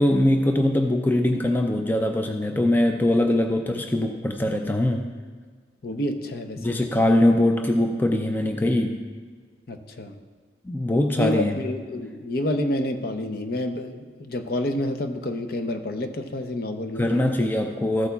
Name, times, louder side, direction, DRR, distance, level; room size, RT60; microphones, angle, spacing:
voice 1, 0.0-5.1 6.6-9.0 10.6-11.6 17.0-18.1, left 1 dB, 10° left, 4 dB, 0.4 m, -22 dB
voice 2, 5.8-6.8 9.7-10.2 11.1-17.2, left 1 dB, 55° left, 6 dB, 0.6 m, -29 dB
14.0 x 8.2 x 2.3 m, 1.5 s
head